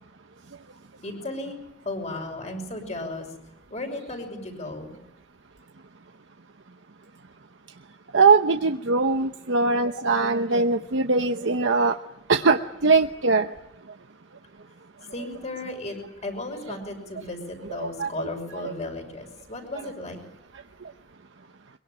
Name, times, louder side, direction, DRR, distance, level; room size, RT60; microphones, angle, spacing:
voice 1, 1.0-1.6 1.8-3.3 3.7-4.8 15.1-16.0 16.2-20.2, left 2 dB, 40° left, 5 dB, 6.1 m, -34 dB
voice 2, 8.1-12.0 12.3-13.5 17.7-18.1 18.6-18.7, right 4 dB, 80° right, 6 dB, 0.9 m, -21 dB
23.0 x 23.0 x 9.0 m, 0.85 s
head